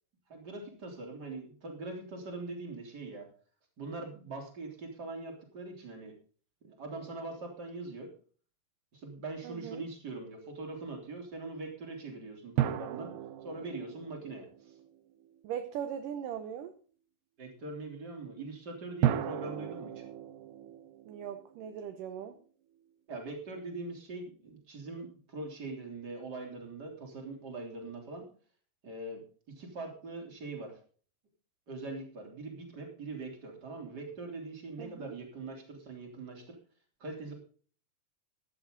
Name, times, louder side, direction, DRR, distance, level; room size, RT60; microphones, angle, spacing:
voice 1, 0.3-3.3 3.8-6.1 6.6-8.1 8.9-13.1 13.4-14.7 17.4-20.0 23.1-28.3 28.8-29.2 29.5-30.8 31.7-36.6 37.0-37.3, right 3 dB, 25° right, 2 dB, 3.5 m, -42 dB
voice 2, 9.4-9.8 15.4-16.7 21.1-22.3 34.8-35.1, right 9 dB, 70° right, 9 dB, 2.2 m, -39 dB
sound 1, 12.6-15.4 19.0-22.4, right 12 dB, 85° right, 2.9 m, -35 dB
15.0 x 11.5 x 3.8 m, 0.43 s
omnidirectional pair, 4.5 m